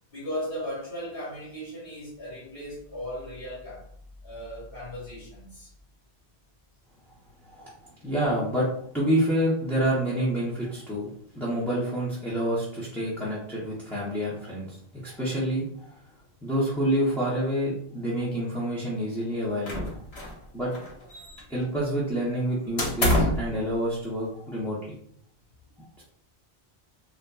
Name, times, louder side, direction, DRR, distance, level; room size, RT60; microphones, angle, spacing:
voice 1, 0.1-3.9 4.2-5.7 7.5-7.7 21.3-21.4, equal, 60° left, -7 dB, 1.4 m, -37 dB
voice 2, 8.0-8.7 8.9-14.8 15.0-15.9 16.4-19.9 20.5-20.7 21.5-24.9 26.0-26.1, equal, ahead, -9 dB, 0.6 m, -28 dB
sound 1, 19.7-20.4 20.7-21.6 22.8-23.5, left 1 dB, 80° left, 1.2 m, -26 dB
3.8 x 2.4 x 2.3 m, 0.65 s
omnidirectional pair, 1.1 m